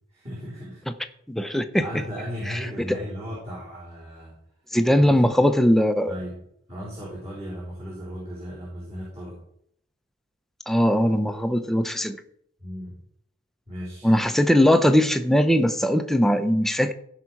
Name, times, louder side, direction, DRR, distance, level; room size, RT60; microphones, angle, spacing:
voice 1, 0.1-0.9 1.8-4.3 5.0-5.1 6.1-6.4 6.7-9.4 12.6-13.0 13.7-14.1, equal, 35° right, 3.9 m, -36 dB
voice 2, 1.3-1.8 2.5-3.0 4.7-6.1 10.7-12.2 14.0-16.9, equal, ahead, 0.7 m, -20 dB
15.0 x 5.8 x 4.8 m
head